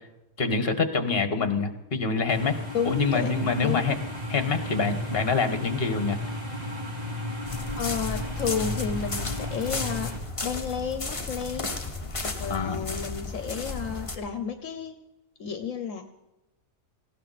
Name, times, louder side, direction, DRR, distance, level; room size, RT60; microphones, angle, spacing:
voice 1, 0.4-2.6 2.8-4.0 4.3-6.2 12.4-12.8, left 4 dB, 45° left, 9 dB, 1.6 m, -26 dB
sound 1, 2.3-10.2, equal, 30° right, 2.4 m, -34 dB
voice 2, 2.7-3.3 3.6-3.9 7.8-10.1 10.4-11.9 12.2-14.9 15.4-16.0, left 7 dB, 70° left, 7 dB, 1.3 m, -31 dB
sound 2, 7.5-14.1, left 3 dB, 25° left, 1.4 m, -34 dB
19.0 x 16.0 x 4.2 m, 1.0 s
omnidirectional pair, 1.4 m